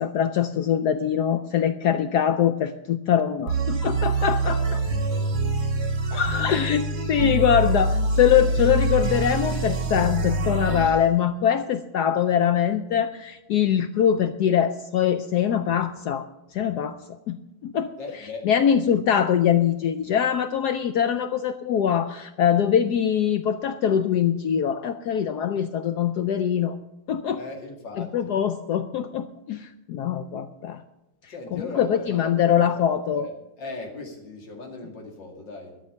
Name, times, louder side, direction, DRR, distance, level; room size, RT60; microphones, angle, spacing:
voice 1, 0.0-4.6 6.1-16.2 16.5-16.9 17.3-17.9 18.4-26.8 27.1-27.4 28.0-30.8 31.5-33.3, left 9 dB, 90° left, 10 dB, 0.8 m, -23 dB
sound 1, 3.5-11.0, right 2 dB, 60° right, 2.7 m, -25 dB
voice 2, 4.3-6.0 6.3-7.0 18.0-18.5 27.4-28.4 31.3-35.8, left 3 dB, 55° left, 1 dB, 2.9 m, -39 dB
12.5 x 6.5 x 9.6 m, 0.90 s
omnidirectional pair, 2.4 m